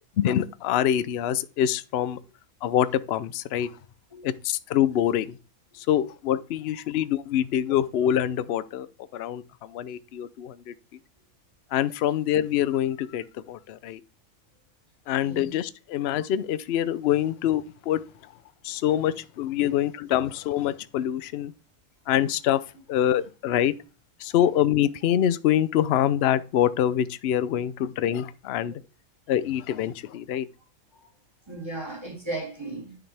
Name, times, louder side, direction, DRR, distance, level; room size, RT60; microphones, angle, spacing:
voice 1, 0.2-2.2 2.6-3.7 4.2-5.4 5.7-8.9 9.1-10.7 11.7-14.0 15.1-18.0 18.6-21.5 22.1-22.6 22.9-23.7 24.2-28.8 29.3-30.5, left 11 dB, 65° left, 0.6 m, -25 dB
voice 2, 31.5-33.0, right 2 dB, 15° right, 3.3 m, -36 dB
10.0 x 6.0 x 3.4 m
omnidirectional pair, 1.6 m